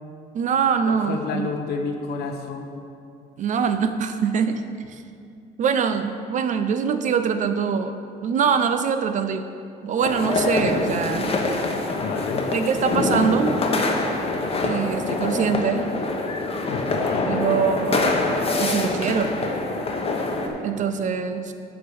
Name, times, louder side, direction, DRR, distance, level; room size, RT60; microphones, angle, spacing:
voice 1, 0.3-1.5 3.4-5.0 5.6-7.9 8.2-9.5 9.8-11.3 12.5-13.5 14.6-15.9 17.3-18.1 18.6-19.3 20.6-21.5, right 6 dB, 50° right, 9 dB, 0.5 m, -23 dB
voice 2, 0.9-2.7 12.0-12.4 16.7-17.3, left 5 dB, 75° left, 4 dB, 0.9 m, -29 dB
sound 1, 10.0-20.5, left 2 dB, 35° left, 1.0 m, -25 dB
9.4 x 3.8 x 6.7 m, 2.4 s
cardioid pair, 110°, 17 cm